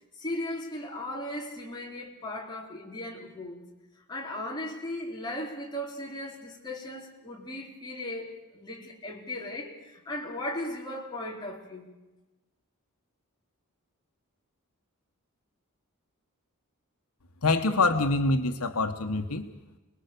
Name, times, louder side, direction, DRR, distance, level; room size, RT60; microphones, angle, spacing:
voice 1, 0.2-3.6 4.1-11.9, left 1 dB, 20° left, 3.9 m, -37 dB
voice 2, 17.4-19.5, left 3 dB, 85° left, 1.4 m, -25 dB
28.5 x 20.5 x 6.9 m
head